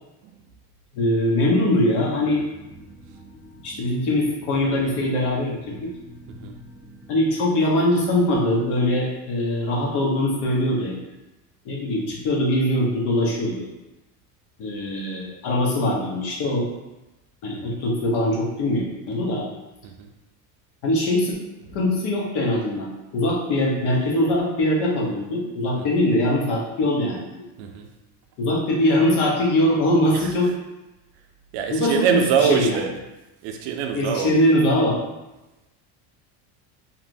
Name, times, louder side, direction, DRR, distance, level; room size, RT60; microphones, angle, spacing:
voice 1, 0.9-2.4 3.6-5.9 7.1-11.0 11.6-13.7 14.6-16.7 17.4-19.4 20.8-21.3 21.7-27.4 28.4-30.5 31.7-32.2 32.5-32.7 33.9-35.0, left 1 dB, 55° left, -3 dB, 1.0 m, -22 dB
sound 1, 2.1-7.1, equal, 5° right, 1.2 m, -46 dB
voice 2, 6.3-6.6 17.5-17.8 19.8-20.1 21.7-21.8 25.8-25.9 27.6-27.9 30.1-30.3 31.5-33.0 33.4-34.4, right 7 dB, 60° right, 4 dB, 0.5 m, -25 dB
2.8 x 2.6 x 2.5 m, 0.99 s
supercardioid pair, 100°, 49 cm